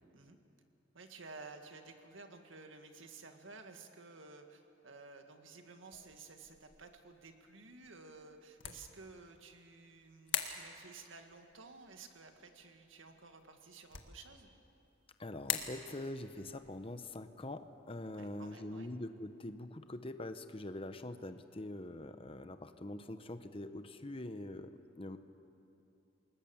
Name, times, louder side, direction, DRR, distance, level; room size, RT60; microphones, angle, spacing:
voice 1, 0.9-14.5 18.1-18.9, right 4 dB, 85° right, 5 dB, 1.9 m, -54 dB
sound 1, 5.9-20.1, left 9 dB, 70° left, 1.7 m, -47 dB
voice 2, 15.2-25.2, left 1 dB, 30° left, 9 dB, 0.9 m, -44 dB
28.5 x 20.0 x 7.2 m, 2.8 s
head